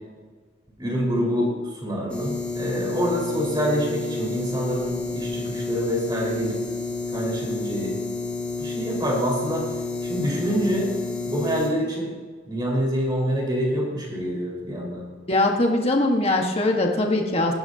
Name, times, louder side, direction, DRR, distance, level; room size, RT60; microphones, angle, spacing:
voice 1, 0.8-6.6 7.1-7.9 8.6-9.6 10.0-10.9 11.3-12.1 12.4-15.1, equal, 25° right, -3 dB, 4.9 m, -26 dB
sound 1, 2.1-11.7, left 3 dB, 5° left, 2.2 m, -30 dB
voice 2, 15.3-17.5, left 2 dB, 30° left, 1 dB, 1.6 m, -21 dB
19.0 x 16.0 x 2.9 m, 1.5 s
head